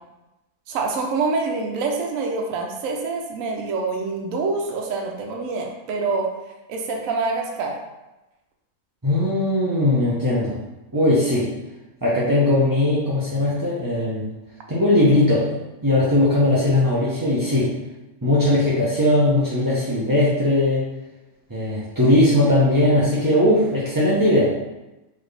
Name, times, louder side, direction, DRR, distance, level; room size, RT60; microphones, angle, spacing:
voice 1, 0.7-6.3 6.7-7.8, right 4 dB, 65° right, 1 dB, 1.0 m, -26 dB
voice 2, 9.0-10.5 10.9-11.5 12.0-14.2 14.7-15.5 15.8-17.7 18.2-20.8 21.5-24.5, left 1 dB, 25° right, -8 dB, 0.4 m, -19 dB
4.1 x 3.5 x 3.3 m, 1.0 s
omnidirectional pair, 1.6 m